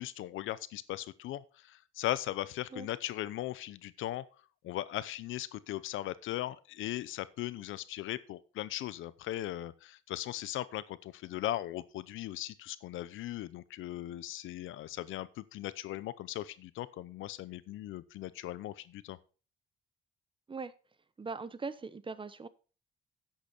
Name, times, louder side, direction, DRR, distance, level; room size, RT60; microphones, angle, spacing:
voice 1, 0.0-4.2 4.6-19.2, left 14 dB, 80° left, 17 dB, 0.7 m, -38 dB
voice 2, 21.2-22.5, right 4 dB, 25° right, 15 dB, 0.9 m, -40 dB
10.0 x 8.0 x 4.3 m, 0.36 s
cardioid pair, 90°, 20 cm